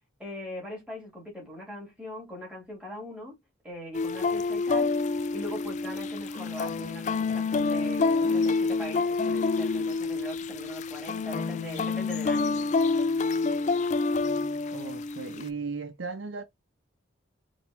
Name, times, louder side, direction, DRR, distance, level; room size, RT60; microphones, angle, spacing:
voice 1, 0.2-3.4 3.6-4.9 5.3-12.6, left 1 dB, 5° right, 3.0 m, -40 dB
sound 1, 3.9-15.5, left 4 dB, 35° left, 0.3 m, -27 dB
voice 2, 14.7-16.4, right 4 dB, 60° right, 0.6 m, -36 dB
5.1 x 3.0 x 2.8 m
head